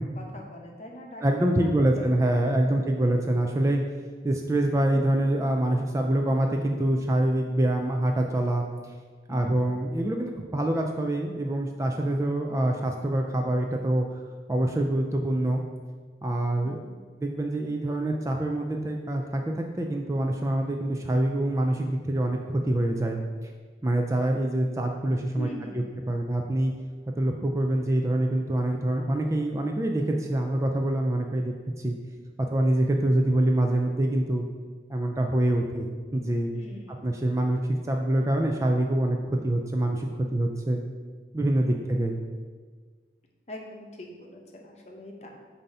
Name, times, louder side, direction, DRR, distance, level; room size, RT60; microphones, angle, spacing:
voice 1, 0.2-2.1 9.3-9.8 16.6-17.0 25.3-26.1 36.5-36.9 41.6-41.9 43.5-45.3, equal, 40° left, 1 dB, 0.8 m, -43 dB
voice 2, 1.2-3.8 4.2-8.6 9.3-14.1 14.5-15.6 16.2-16.8 17.2-23.2 23.8-25.5 26.1-26.7 27.2-31.5 31.8-31.9 32.5-34.4 34.9-36.5 37.0-40.8 41.3-42.2, right 1 dB, 15° right, 2 dB, 0.4 m, -25 dB
7.2 x 2.7 x 5.4 m, 1.5 s
head